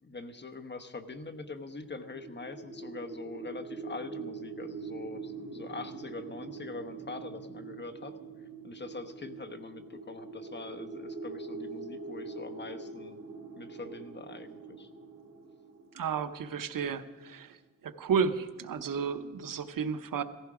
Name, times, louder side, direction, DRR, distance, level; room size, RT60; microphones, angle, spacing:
voice 1, 0.0-8.2 8.6-13.2 13.6-14.9, left 3 dB, 35° left, 8 dB, 1.1 m, -43 dB
sound 1, 1.7-16.7, right 4 dB, 45° right, 3.1 m, -44 dB
voice 2, 15.9-17.6 17.8-20.2, right 6 dB, 80° right, 10 dB, 0.9 m, -32 dB
17.5 x 15.0 x 4.9 m, 1.3 s
wide cardioid pair, 115°, 33 cm